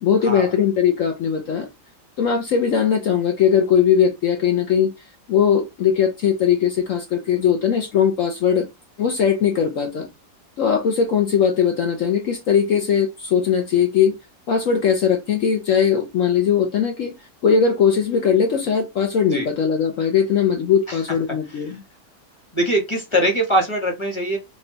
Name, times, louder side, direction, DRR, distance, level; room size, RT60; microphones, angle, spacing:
voice 1, 0.0-1.7 2.2-8.7 9.0-10.1 10.6-14.1 14.5-17.1 17.4-21.8, left 7 dB, 65° left, 0.8 m, -19 dB
voice 2, 22.5-24.4, right 1 dB, 20° left, 0.9 m, -22 dB
4.1 x 2.2 x 3.8 m
omnidirectional pair, 1.9 m